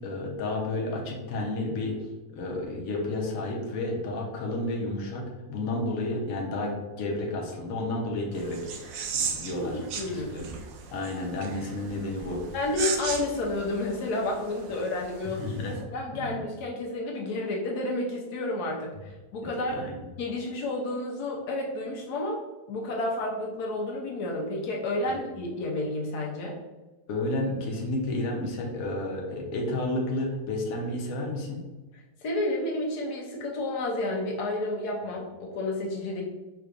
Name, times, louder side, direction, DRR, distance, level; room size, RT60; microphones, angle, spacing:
voice 1, 0.0-2.0 2.3-8.9 9.3-9.8 10.0-10.5 10.9-12.4 15.4-15.8 16.2-16.4 19.7-19.9 25.0-25.1 27.1-31.6, left 2 dB, 65° left, -1 dB, 1.2 m, -31 dB
sound 1, 8.3-15.8, right 6 dB, 70° right, 1.0 m, -37 dB
voice 2, 9.6-10.5 12.5-18.9 19.3-19.8 20.2-22.4 22.7-26.6 32.2-36.2, left 2 dB, 90° left, -1 dB, 1.4 m, -31 dB
4.8 x 3.7 x 2.5 m, 1.2 s
omnidirectional pair, 1.6 m